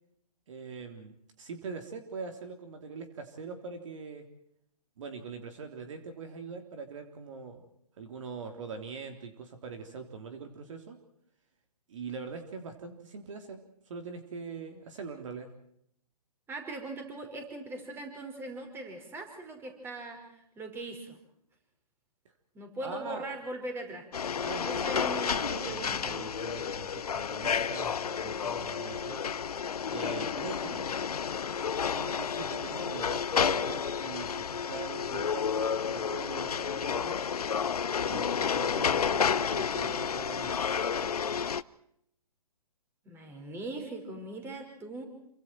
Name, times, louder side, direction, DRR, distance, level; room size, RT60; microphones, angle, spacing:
voice 1, 0.5-4.3 5.0-7.7 8.0-11.0 11.9-15.5 22.8-23.2 24.4-29.2 29.9-30.9 31.9-37.2 38.0-40.7 41.0-41.1, right 5 dB, 55° right, 6 dB, 3.5 m, -42 dB
voice 2, 16.5-21.2 22.5-24.1 24.6-26.2 43.0-45.0, right 2 dB, 10° right, 4 dB, 5.3 m, -40 dB
sound 1, 24.1-41.6, left 7 dB, 75° left, 0.9 m, -31 dB
28.5 x 25.0 x 4.5 m, 0.75 s
hypercardioid pair, 135°, 20 cm